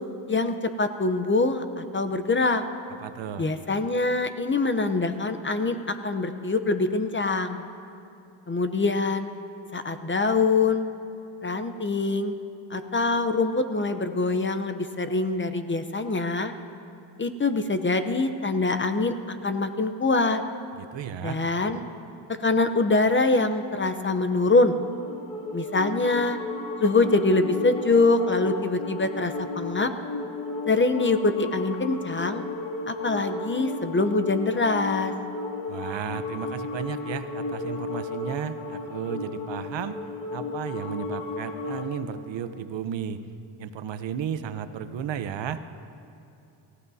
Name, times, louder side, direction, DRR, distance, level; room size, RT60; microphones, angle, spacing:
voice 1, 0.3-2.6 3.4-7.6 8.5-9.3 9.7-10.9 11.4-12.3 12.7-16.5 17.2-20.4 21.2-21.8 22.4-24.8 25.5-26.4 26.8-29.9 30.7-32.4 32.9-35.1, left 3 dB, 25° left, 8 dB, 0.8 m, -24 dB
voice 2, 3.0-3.5 20.7-21.4 35.7-40.0 40.3-43.2 43.6-45.6, right 8 dB, 60° right, 10 dB, 0.9 m, -34 dB
sound 1, 24.3-41.9, left 3 dB, 80° left, 2.7 m, -34 dB
28.0 x 14.5 x 2.8 m, 2.7 s
cardioid pair, 95°, 50 cm